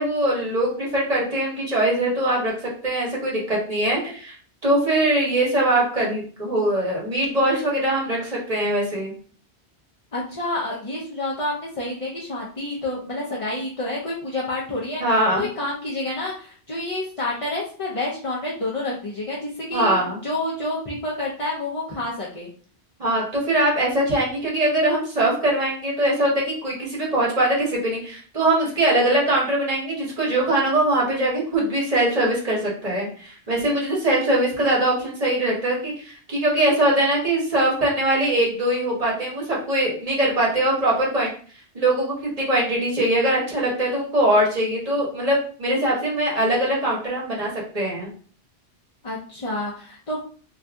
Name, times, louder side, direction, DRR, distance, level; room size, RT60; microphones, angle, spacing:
voice 1, 0.0-2.5 2.8-4.4 4.6-9.1 15.0-15.4 19.7-20.2 23.0-41.3 41.7-48.1, right 1 dB, 35° right, -3 dB, 1.0 m, -22 dB
voice 2, 10.1-22.5 49.0-50.2, left 2 dB, 40° left, -5 dB, 0.5 m, -29 dB
2.6 x 2.4 x 3.4 m, 0.43 s
omnidirectional pair, 1.2 m